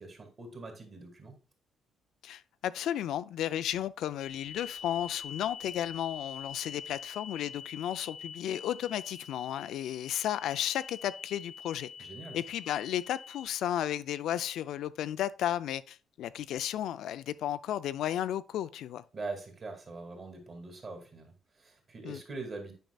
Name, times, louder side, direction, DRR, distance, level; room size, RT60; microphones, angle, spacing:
voice 1, 0.0-1.4 12.0-12.4 19.1-22.7, right 3 dB, 30° right, 2.2 m, -43 dB
voice 2, 2.2-11.9 12.3-19.0 22.0-22.2, left 11 dB, 75° left, 0.4 m, -33 dB
sound 1, 4.2-13.5, left 6 dB, 60° left, 0.8 m, -45 dB
9.1 x 5.4 x 2.3 m
cardioid pair, 155°, 0 cm